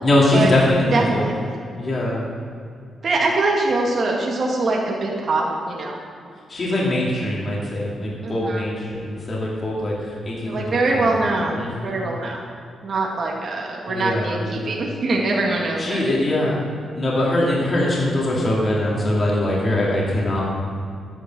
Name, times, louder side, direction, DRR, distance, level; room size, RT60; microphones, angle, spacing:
voice 1, 0.0-1.3 1.8-2.2 6.5-11.0 11.6-12.0 13.9-14.5 15.8-16.6 17.0-20.4, left 1 dB, 30° left, -5 dB, 2.6 m, -22 dB
voice 2, 0.9-1.3 3.0-6.0 8.2-8.7 10.4-12.4 12.8-16.0, right 2 dB, 40° right, -2 dB, 2.3 m, -23 dB
13.0 x 10.0 x 6.3 m, 2.4 s
wide cardioid pair, 170°, 0 cm